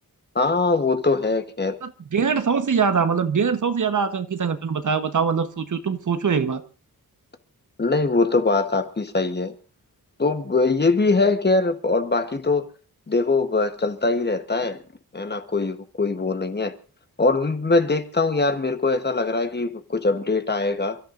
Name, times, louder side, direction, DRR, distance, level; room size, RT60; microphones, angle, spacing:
voice 1, 0.3-1.8 7.8-9.5 10.2-12.7 13.1-14.8 15.1-16.7 17.2-21.0, left 3 dB, 25° left, 1.1 m, -22 dB
voice 2, 1.8-6.6, right 6 dB, 50° right, 1.2 m, -23 dB
28.5 x 13.5 x 2.6 m
wide cardioid pair, 170°, 37 cm